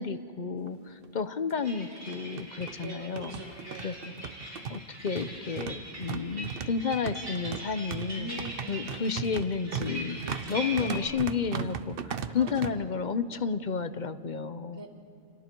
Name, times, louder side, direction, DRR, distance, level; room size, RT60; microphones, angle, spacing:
voice 1, 0.0-3.4 3.8-3.9 4.7-8.3 8.7-10.2 10.5-14.8, left 5 dB, 40° left, 11 dB, 0.8 m, -31 dB
sound 1, 0.7-0.8 1.0-1.1 2.0-12.7, right 6 dB, 55° right, 0.9 m, -37 dB
sound 2, 1.6-11.1, right 1 dB, 70° right, 6.8 m, -42 dB
voice 2, 2.8-4.1 8.1-9.3 10.2-11.1 12.4-13.0 14.7-14.9, right 1 dB, 20° right, 1 dB, 2.1 m, -44 dB
29.5 x 27.0 x 4.6 m, 2.4 s
omnidirectional pair, 1.3 m